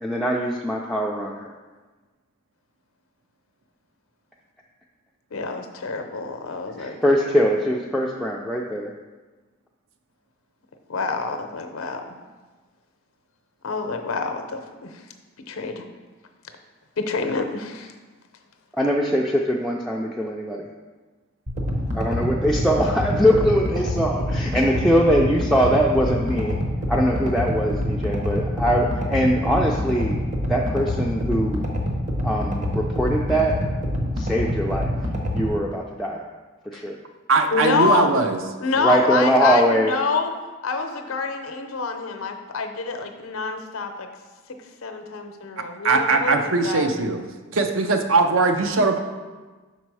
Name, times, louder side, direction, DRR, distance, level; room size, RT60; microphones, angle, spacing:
voice 1, 0.0-1.5 6.8-8.9 18.7-20.7 21.9-26.6 26.9-30.2 30.5-31.7 32.2-33.6 34.2-35.0 35.3-36.2 36.6-37.0 38.8-39.9, equal, ahead, -3 dB, 0.3 m, -22 dB
voice 2, 5.3-7.0 10.9-12.2 13.6-15.0 15.5-15.9 17.0-17.9 37.5-38.2 38.6-40.3 40.6-44.1 44.8-46.9, left 4 dB, 85° left, 6 dB, 0.6 m, -27 dB
sound 1, 21.5-35.5, equal, 35° right, 0.8 m, -26 dB
voice 3, 37.3-38.4 45.8-47.2 47.5-49.0, right 3 dB, 70° right, 6 dB, 0.6 m, -20 dB
6.0 x 4.2 x 4.7 m, 1.3 s
head